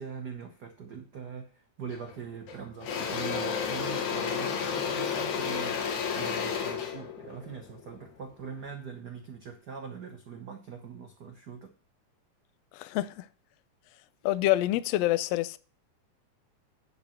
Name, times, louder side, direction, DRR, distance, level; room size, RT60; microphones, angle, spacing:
voice 1, 0.0-11.7, right 6 dB, 90° right, 0.9 m, -42 dB
Engine / Drill, 1.9-2.1 2.5-8.6, left 7 dB, 70° left, 2.4 m, -32 dB
voice 2, 12.7-13.3 14.2-15.6, left 15 dB, 90° left, 1.4 m, -27 dB
10.5 x 4.1 x 6.4 m
omnidirectional pair, 3.6 m